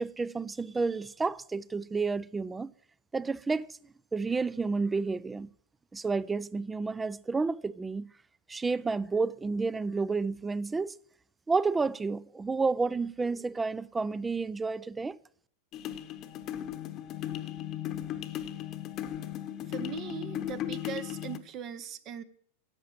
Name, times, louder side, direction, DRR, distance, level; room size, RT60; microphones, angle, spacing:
voice 1, 0.0-2.7 3.1-3.7 4.1-5.5 5.9-8.1 8.5-11.0 11.5-15.2, right 4 dB, 15° right, 0.4 m, -30 dB
sound 1, 15.7-21.4, left 11 dB, 40° left, 1.0 m, -36 dB
voice 2, 19.7-22.2, right 9 dB, 40° right, 0.8 m, -40 dB
11.0 x 7.6 x 7.4 m
hypercardioid pair, 100°, 0 cm